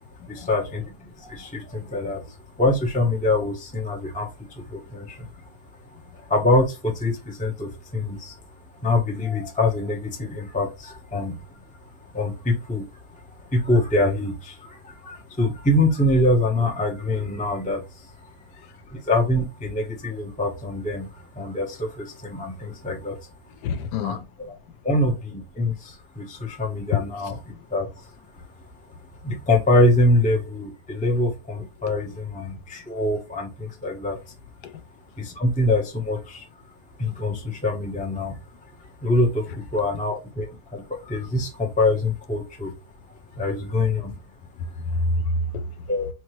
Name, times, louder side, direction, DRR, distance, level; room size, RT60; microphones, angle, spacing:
voice 1, 0.3-2.2 2.6-5.3 6.3-8.4 8.8-11.3 12.1-12.8 13.5-17.8 18.9-23.2 24.0-24.5 24.8-27.3 27.7-27.9 29.2-34.2 35.2-36.4 37.0-38.4 39.0-42.7 43.4-44.1 45.9-46.1, left 1 dB, 10° left, 0.3 m, -24 dB
voice 2, 23.6-24.2 26.9-27.3 34.6-34.7 43.5-43.6 44.9-45.6, left 3 dB, 80° left, 1.2 m, -27 dB
4.5 x 3.2 x 3.1 m
omnidirectional pair, 1.9 m